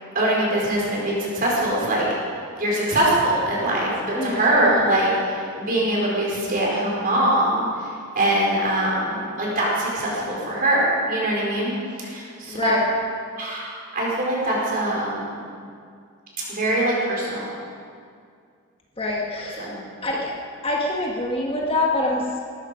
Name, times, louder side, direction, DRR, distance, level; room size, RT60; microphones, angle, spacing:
voice 1, 0.1-2.1 2.6-11.7 12.0-12.7 13.4-15.4 16.5-17.5 19.6-19.8, right 1 dB, 40° right, -4 dB, 4.6 m, -23 dB
voice 2, 4.1-5.0 12.5-12.9 19.0-19.7 20.0-20.3 20.6-22.4, left 2 dB, 25° left, -1 dB, 1.5 m, -25 dB
18.0 x 14.0 x 5.1 m, 2.2 s
head